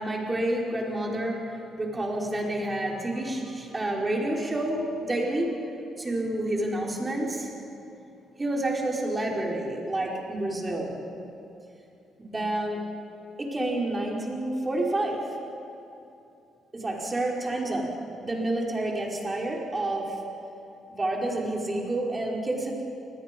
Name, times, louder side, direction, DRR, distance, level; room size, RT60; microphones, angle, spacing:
voice 1, 0.0-5.6 6.0-7.5 8.4-11.0 12.2-12.8 13.4-15.4 16.7-20.2 20.9-22.7, right 1 dB, 20° right, -2 dB, 5.1 m, -29 dB
29.0 x 20.5 x 5.4 m, 2.8 s
cardioid pair, 90°, 0 cm